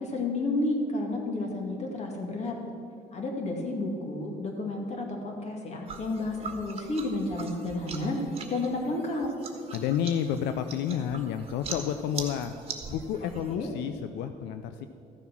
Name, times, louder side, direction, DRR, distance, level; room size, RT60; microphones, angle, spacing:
voice 1, 0.0-2.6 3.1-8.2 8.5-9.3 13.4-13.7, left 2 dB, 40° left, 1 dB, 2.2 m, -31 dB
sound 1, 5.9-13.5, right 5 dB, 35° right, 1.5 m, -42 dB
voice 2, 9.7-12.5 12.9-14.9, left 9 dB, 85° left, 9 dB, 0.5 m, -30 dB
14.0 x 7.2 x 6.0 m, 2.5 s
cardioid pair, 110°, 17 cm